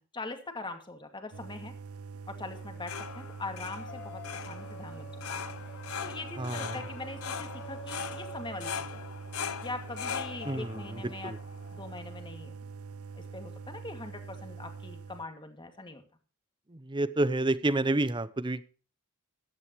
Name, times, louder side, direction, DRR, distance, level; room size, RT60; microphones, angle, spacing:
voice 1, 0.1-1.7 2.3-4.2 4.5-5.4 6.0-9.0 9.6-11.3 11.7-12.6 13.3-16.0, left 2 dB, 20° left, 6 dB, 2.3 m, -42 dB
sound 1, 1.3-15.2, right 5 dB, 70° right, 0.5 m, -44 dB
sound 2, 2.5-12.3, left 7 dB, 70° left, 0.9 m, -41 dB
sound 3, 3.7-8.8 9.5-10.1 10.4-10.6, left 1 dB, 50° left, 1.6 m, -48 dB
voice 2, 6.4-6.8 10.5-11.4 16.7-18.6, right 2 dB, 20° right, 15 dB, 0.8 m, -29 dB
15.0 x 12.0 x 3.1 m, 0.37 s
head